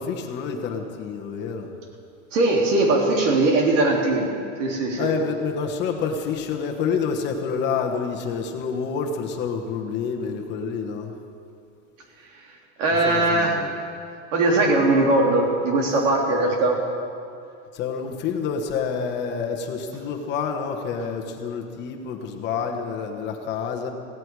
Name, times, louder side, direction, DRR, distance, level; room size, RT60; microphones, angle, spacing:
voice 1, 0.0-1.7 5.0-11.2 12.9-13.7 17.7-23.9, left 5 dB, 30° left, 3 dB, 1.2 m, -28 dB
voice 2, 2.3-4.3 4.6-5.1 12.8-13.5 14.3-16.8, right 2 dB, 85° right, 0 dB, 3.5 m, -20 dB
17.5 x 16.5 x 4.8 m, 2.4 s
supercardioid pair, 170°, 37 cm